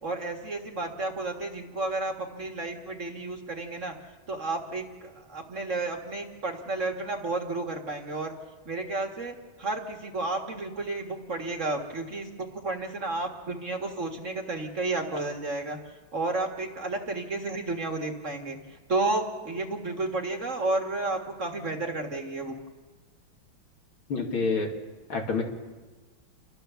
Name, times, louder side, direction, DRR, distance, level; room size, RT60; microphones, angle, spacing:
voice 1, 0.0-3.9 4.3-8.3 8.7-15.8 16.1-18.6 18.9-22.6, right 2 dB, 40° right, 3 dB, 2.0 m, -32 dB
voice 2, 24.1-24.7 25.1-25.4, left 4 dB, 85° left, 1 dB, 3.2 m, -27 dB
29.5 x 13.0 x 7.0 m, 1.3 s
omnidirectional pair, 2.2 m